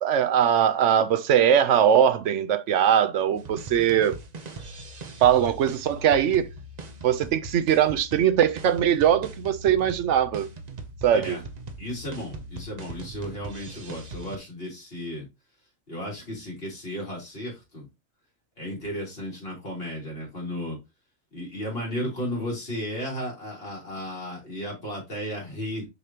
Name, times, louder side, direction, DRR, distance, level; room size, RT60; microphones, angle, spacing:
voice 1, 0.0-4.2 5.2-6.5 7.0-10.5 11.0-11.4, right 9 dB, 65° right, 0.9 m, -21 dB
sound 1, 3.4-14.4, right 3 dB, 40° right, 0.7 m, -40 dB
voice 2, 11.8-15.3 15.9-17.9 18.6-20.8 21.3-25.9, equal, 45° left, 3.6 m, -34 dB
6.6 x 5.1 x 2.8 m
omnidirectional pair, 1.4 m